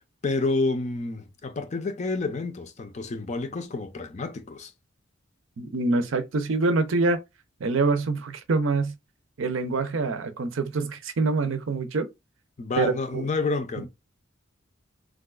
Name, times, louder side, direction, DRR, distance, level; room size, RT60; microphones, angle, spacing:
voice 1, 0.2-4.7 12.6-13.9, left 3 dB, 35° left, 0.4 m, -29 dB
voice 2, 5.6-7.2 7.6-8.9 9.4-12.1 12.8-13.3 13.8-13.9, right 3 dB, 75° right, 0.6 m, -25 dB
3.7 x 2.3 x 2.3 m
head